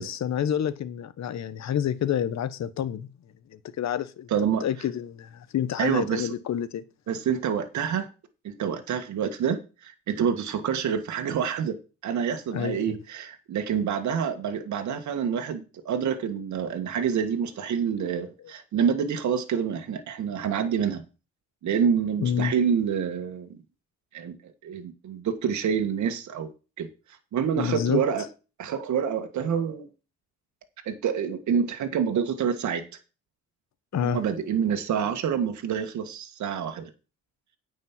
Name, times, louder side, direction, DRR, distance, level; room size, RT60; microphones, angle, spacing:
voice 1, 0.0-3.1 3.5-4.3 4.6-6.8 12.5-13.0 22.2-22.5 27.6-28.0 33.9-34.2, left 9 dB, 65° left, 1.2 m, -28 dB
voice 2, 4.3-4.6 5.8-6.3 7.1-8.1 8.4-11.8 12.0-21.0 21.6-23.6 24.1-24.3 24.6-26.5 26.8-26.9 27.3-28.3 28.6-29.9 30.8-32.8 34.0-36.9, right 7 dB, 70° right, 1.7 m, -27 dB
9.5 x 5.5 x 7.3 m
cardioid pair, 90°, 30 cm